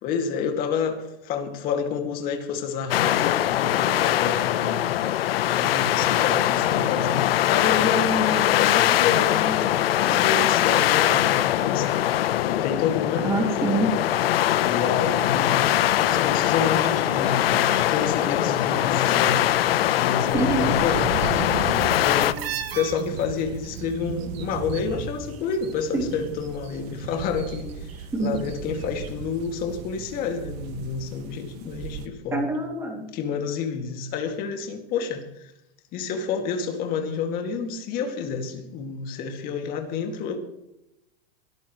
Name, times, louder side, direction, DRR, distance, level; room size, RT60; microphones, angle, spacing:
voice 1, 0.0-4.8 5.5-12.0 12.4-13.3 14.6-19.5 19.9-21.0 22.0-22.5 22.7-32.5 33.1-35.5 35.9-40.4, left 6 dB, 30° left, 5 dB, 2.2 m, -29 dB
sound 1, 2.9-22.3, left 13 dB, 75° left, 0.9 m, -22 dB
voice 2, 13.2-13.9 20.3-20.8 25.9-26.1 28.1-28.3 32.3-33.0, right 2 dB, 10° right, 2 dB, 2.5 m, -25 dB
sound 2, 15.5-32.1, right 6 dB, 40° right, 1.3 m, -37 dB
sound 3, 15.6-18.3 18.6-19.6 19.9-25.8 26.1-29.1 29.4-29.5, right 10 dB, 80° right, 2.3 m, -41 dB
22.0 x 13.0 x 3.1 m, 0.88 s
supercardioid pair, 165°, 30 cm